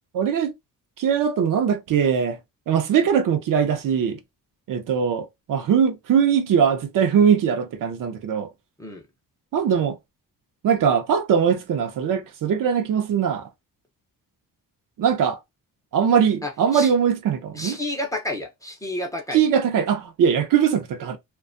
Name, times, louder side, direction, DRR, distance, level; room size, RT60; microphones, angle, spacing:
voice 1, 0.1-0.5 1.0-2.4 2.7-4.2 4.7-8.5 9.5-10.0 10.6-13.5 15.0-15.4 15.9-17.8 19.3-21.2, right 7 dB, 60° right, 0.6 m, -21 dB
voice 2, 16.4-16.9 17.5-19.4, left 1 dB, 10° left, 0.6 m, -30 dB
2.5 x 2.2 x 2.4 m
cardioid pair, 130°, 36 cm